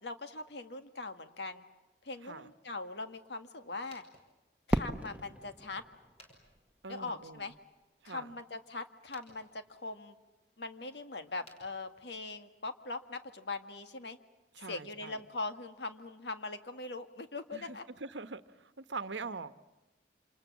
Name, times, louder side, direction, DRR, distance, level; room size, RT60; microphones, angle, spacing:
voice 1, 0.0-1.6 2.0-4.0 4.7-5.8 6.9-7.5 8.0-10.1 10.6-14.2 14.6-17.8, left 3 dB, 70° left, 1.7 m, -41 dB
sound 1, 3.7-12.5, left 1 dB, 35° left, 5.4 m, -65 dB
Fireworks, 4.7-7.6, right 1 dB, 5° right, 1.1 m, -36 dB
voice 2, 6.8-7.5 8.0-8.4 14.5-15.2 17.5-19.6, right 4 dB, 90° right, 1.0 m, -43 dB
28.0 x 27.5 x 7.3 m
head